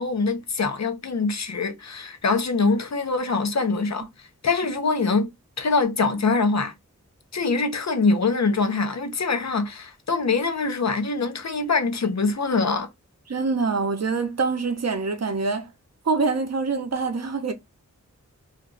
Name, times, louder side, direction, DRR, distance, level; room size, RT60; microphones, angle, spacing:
voice 1, 0.0-5.3 5.6-6.7 7.3-12.9, left 4 dB, 60° left, 0.7 m, -24 dB
voice 2, 13.3-15.7 16.0-17.5, right 4 dB, 55° right, 0.7 m, -25 dB
2.5 x 2.3 x 3.7 m
wide cardioid pair, 70°, 31 cm